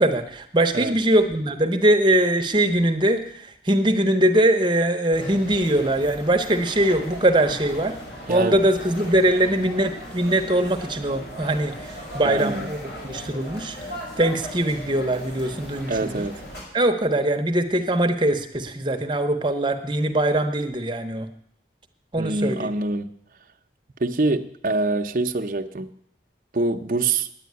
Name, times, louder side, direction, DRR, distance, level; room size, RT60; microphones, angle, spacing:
voice 1, 0.0-8.0 8.3-16.3 16.7-21.3 22.1-22.7, right 1 dB, 25° right, 0.9 m, -22 dB
sound 1, 5.1-16.6, equal, 75° left, 5.9 m, -38 dB
voice 2, 8.3-8.6 12.2-12.7 15.9-16.4 22.2-23.1 24.0-25.9 26.5-27.3, right 2 dB, 50° right, 0.7 m, -25 dB
10.0 x 8.6 x 9.3 m
head